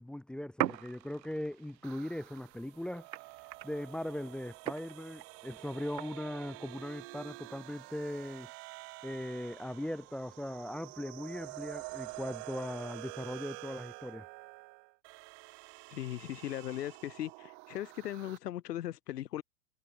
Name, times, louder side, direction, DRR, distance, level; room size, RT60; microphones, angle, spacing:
voice 1, 0.0-3.1 3.6-8.5 9.0-14.3, left 1 dB, ahead, 1.4 m, -39 dB
sound 1, 0.6-6.6, right 13 dB, 85° right, 1.5 m, -42 dB
sound 2, 1.8-18.4, right 37 dB, 25° right, 0.8 m, -48 dB
voice 2, 15.9-19.4, left 12 dB, 70° left, 3.9 m, -38 dB
supercardioid pair, 160°, 49 cm